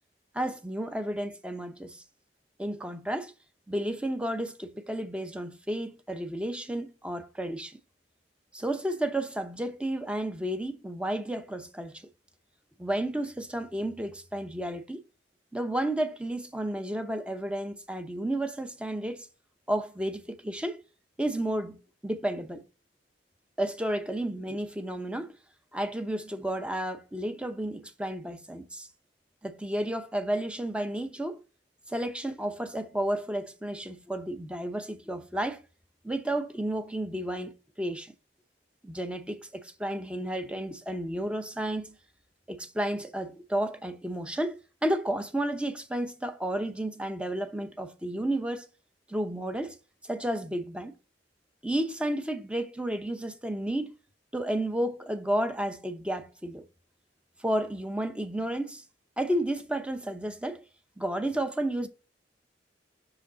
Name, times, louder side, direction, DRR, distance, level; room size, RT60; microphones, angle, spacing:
voice 1, 0.3-2.0 2.6-3.3 3.7-7.8 8.5-12.1 12.8-15.0 15.5-19.3 19.7-20.8 21.2-21.8 22.0-22.6 23.6-25.3 25.7-28.9 29.4-31.4 31.9-35.6 36.0-38.1 38.8-42.0 42.5-48.7 49.1-49.8 50.1-50.9 51.6-53.9 54.3-56.6 57.4-58.8 59.2-60.6 61.0-61.9, right 1 dB, 5° right, 0.7 m, -32 dB
6.3 x 4.9 x 3.9 m
head